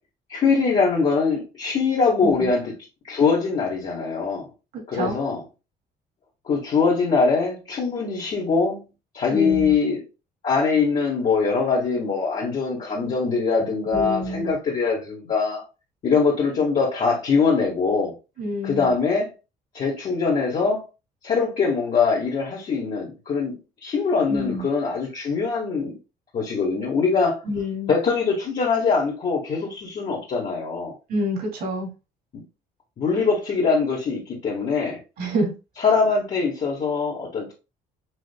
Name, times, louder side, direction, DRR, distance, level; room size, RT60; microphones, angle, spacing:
voice 1, 0.3-2.7 3.1-4.5 4.9-5.4 6.5-8.8 9.1-10.0 10.4-15.6 16.0-18.1 18.6-19.3 19.7-20.8 21.2-23.5 23.8-26.0 26.3-27.4 27.9-30.9 32.3-32.4 33.0-35.0 35.8-37.5, left 5 dB, 45° left, 1.6 m, -22 dB
voice 2, 2.2-2.5 4.7-5.1 9.3-9.7 13.9-14.5 18.4-18.9 24.3-24.7 27.4-27.9 31.1-31.9 35.2-35.5, left 1 dB, 65° right, 2.6 m, -27 dB
6.2 x 3.0 x 2.2 m
cardioid pair, 110°, 17 cm